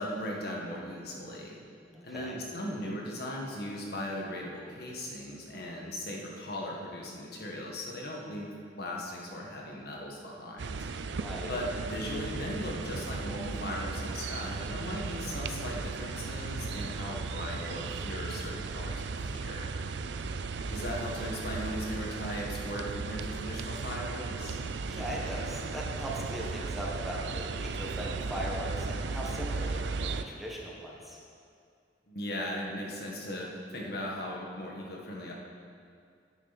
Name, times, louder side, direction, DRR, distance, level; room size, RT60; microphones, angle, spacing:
voice 1, 0.0-1.6 2.0-8.5 8.8-10.8 11.5-19.7 20.7-24.6 32.1-35.3, left 1 dB, 60° left, -2 dB, 1.6 m, -38 dB
voice 2, 1.9-2.3 11.1-11.5 24.9-31.2, equal, ahead, -5 dB, 1.5 m, -39 dB
sound 1, 10.6-30.2, right 4 dB, 70° right, 0.4 m, -36 dB
10.0 x 9.8 x 4.2 m, 2.3 s
head